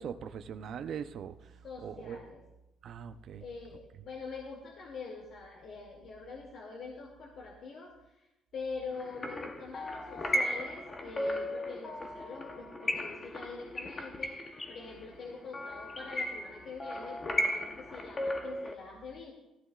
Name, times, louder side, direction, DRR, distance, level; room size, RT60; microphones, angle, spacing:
voice 1, 0.0-1.5 1.8-2.2 2.8-3.4, right 7 dB, 55° right, 8 dB, 0.6 m, -41 dB
voice 2, 1.6-2.4 3.4-19.3, left 4 dB, 55° left, -2 dB, 2.3 m, -44 dB
sound 1, 9.0-18.7, left 1 dB, 20° left, 0.9 m, -36 dB
17.5 x 15.0 x 2.4 m, 0.94 s
cardioid pair, 140°, 0 cm